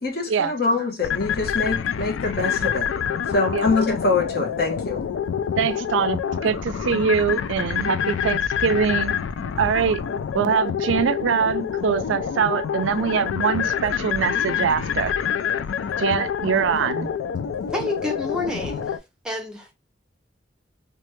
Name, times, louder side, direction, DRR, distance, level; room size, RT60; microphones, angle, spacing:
voice 1, 0.0-2.9 3.3-5.0, left 3 dB, 50° left, 0.9 m, -24 dB
sound 1, 1.0-19.0, left 8 dB, 85° left, 0.3 m, -27 dB
voice 2, 5.6-9.2 9.6-10.0 10.3-15.2 16.0-17.1, right 7 dB, 80° right, 0.3 m, -23 dB
voice 3, 17.7-19.0 19.2-19.7, left 1 dB, 5° right, 0.6 m, -29 dB
3.1 x 2.2 x 3.0 m
head